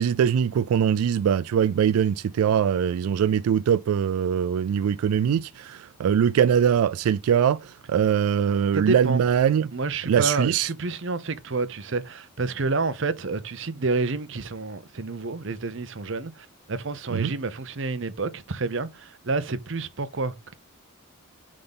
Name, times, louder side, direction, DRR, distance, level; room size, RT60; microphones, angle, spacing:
voice 1, 0.0-9.7 10.1-10.7 17.1-17.3, right 8 dB, 90° right, 0.3 m, -22 dB
voice 2, 8.7-9.2 9.7-20.5, right 3 dB, 60° right, 0.8 m, -29 dB
7.7 x 3.8 x 5.5 m
head